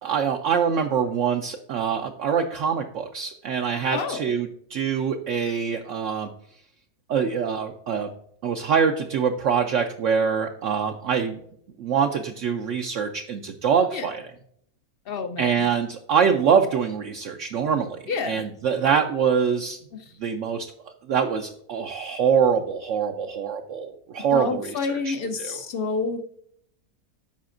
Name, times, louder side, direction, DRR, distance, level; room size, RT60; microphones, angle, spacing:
voice 1, 0.0-6.3 7.1-8.1 8.4-11.4 11.8-14.2 15.4-18.0 18.3-19.8 20.2-25.6, right 7 dB, 65° right, 4 dB, 0.8 m, -24 dB
voice 2, 3.9-4.3 13.9-14.1 15.1-15.6 18.1-18.4 24.3-26.2, left 4 dB, 60° left, 7 dB, 0.6 m, -29 dB
13.0 x 5.1 x 2.5 m, 0.68 s
omnidirectional pair, 1.6 m